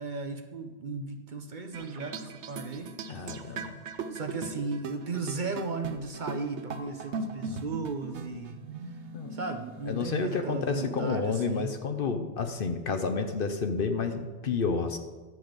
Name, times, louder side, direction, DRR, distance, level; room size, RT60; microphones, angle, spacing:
voice 1, 0.0-2.9 3.3-3.6 4.1-8.6 9.3-11.7, right 4 dB, 50° right, 6 dB, 0.8 m, -36 dB
sound 1, 1.7-11.2, right 4 dB, 75° right, 1.0 m, -40 dB
voice 2, 3.1-3.8 7.4-7.7 9.1-9.4 9.9-15.0, left 4 dB, 55° left, 6 dB, 0.9 m, -30 dB
10.5 x 7.7 x 5.1 m, 1.3 s
omnidirectional pair, 1.2 m